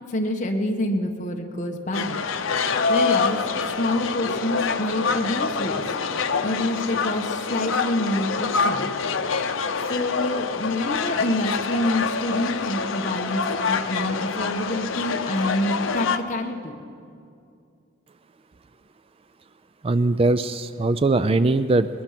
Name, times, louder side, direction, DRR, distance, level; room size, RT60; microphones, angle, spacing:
voice 1, 0.1-2.2 2.9-5.8 6.4-8.9 9.9-13.4 13.7-16.8, left 1 dB, 40° left, 3 dB, 1.5 m, -27 dB
sound 1, 1.9-16.2, left 5 dB, 80° left, 0.8 m, -26 dB
voice 2, 19.8-21.9, right 2 dB, 30° right, 12 dB, 0.4 m, -20 dB
21.0 x 21.0 x 6.0 m, 2.5 s
head